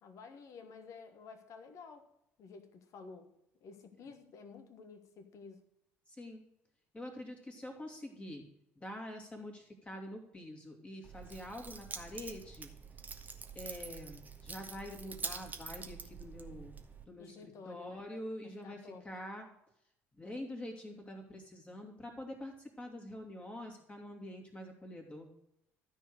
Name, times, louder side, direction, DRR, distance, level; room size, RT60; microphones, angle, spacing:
voice 1, 0.0-2.1 2.4-3.3 3.6-5.6 17.2-18.1 18.6-19.1, left 5 dB, 50° left, 9 dB, 1.4 m, -52 dB
voice 2, 6.1-6.4 6.9-8.4 8.8-12.7 13.5-16.8 17.0-19.5 20.1-25.3, left 1 dB, 15° left, 1 dB, 2.8 m, -46 dB
Keys jangling, 11.0-17.0, right 5 dB, 25° right, 1.3 m, -46 dB
13.0 x 4.6 x 6.5 m, 0.80 s
figure-of-eight pair, 55°, 7 cm